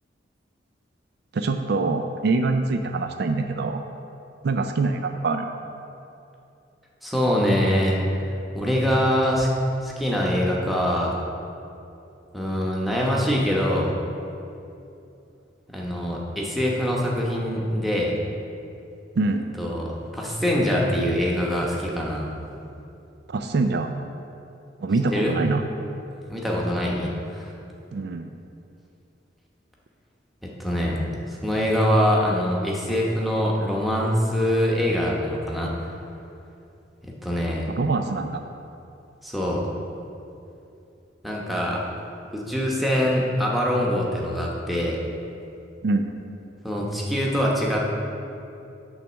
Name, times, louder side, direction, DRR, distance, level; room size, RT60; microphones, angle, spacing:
voice 1, 1.3-3.8 4.4-5.5 19.2-19.4 23.3-23.9 24.8-25.6 27.9-28.3 37.8-38.4 45.8-46.1, right 3 dB, 60° right, 6 dB, 0.4 m, -24 dB
voice 2, 7.0-8.0 8.5-9.5 9.8-11.2 12.3-13.9 15.7-18.1 19.6-22.3 25.1-25.4 26.3-27.5 30.4-35.7 37.0-37.7 39.2-39.7 41.2-41.8 42.3-45.0 46.6-47.9, equal, ahead, -4 dB, 0.9 m, -24 dB
8.8 x 3.5 x 6.2 m, 2.7 s
head